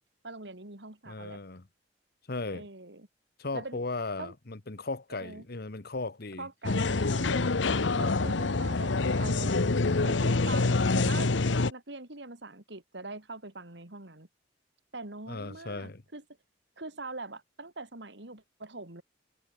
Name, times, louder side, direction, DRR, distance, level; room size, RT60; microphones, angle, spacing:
voice 1, 0.2-1.4 2.5-3.1 3.5-3.8 4.2-4.3 5.1-5.4 6.4-7.5 8.0-9.6 10.0-11.3 11.7-14.3 14.9-16.2 16.8-19.0, right 2 dB, 65° right, 3.2 m, -43 dB
voice 2, 1.1-1.6 2.3-2.7 3.4-6.5 15.3-16.0, left 3 dB, 55° left, 1.2 m, -36 dB
sound 1, 6.6-11.7, left 3 dB, 80° left, 1.0 m, -26 dB
head